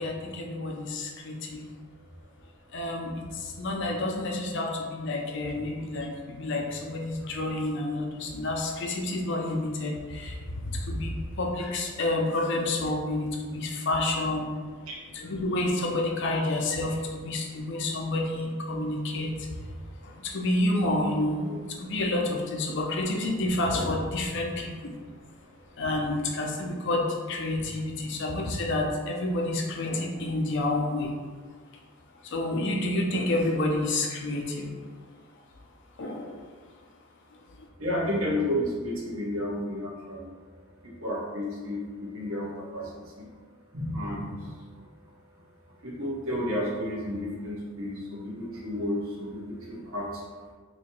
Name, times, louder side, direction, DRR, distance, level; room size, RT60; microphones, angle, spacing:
voice 1, 0.0-1.6 2.7-14.7 15.1-19.6 20.0-24.9 25.8-31.2 32.2-34.7 36.0-36.4 37.6-37.7, left 2 dB, 60° left, 1 dB, 0.6 m, -29 dB
voice 2, 37.8-40.3 40.8-43.3 43.7-44.6 45.8-50.2, left 1 dB, 75° right, -4 dB, 1.0 m, -32 dB
3.0 x 2.8 x 4.3 m, 1.5 s
head